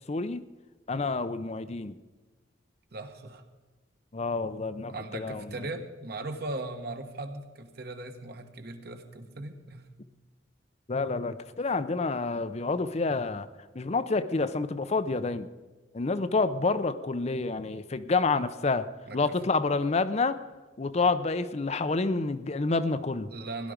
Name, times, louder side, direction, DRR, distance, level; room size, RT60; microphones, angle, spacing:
voice 1, 0.1-0.4 0.9-1.9 4.1-5.5 10.9-13.5 13.7-15.5 15.9-18.9 19.1-20.4 20.8-23.3, left 3 dB, 35° left, 12 dB, 0.6 m, -28 dB
voice 2, 2.9-3.4 4.9-9.9 19.1-19.3 23.3-23.7, right 2 dB, 55° right, 6 dB, 1.5 m, -38 dB
17.0 x 11.5 x 5.1 m, 1.3 s
head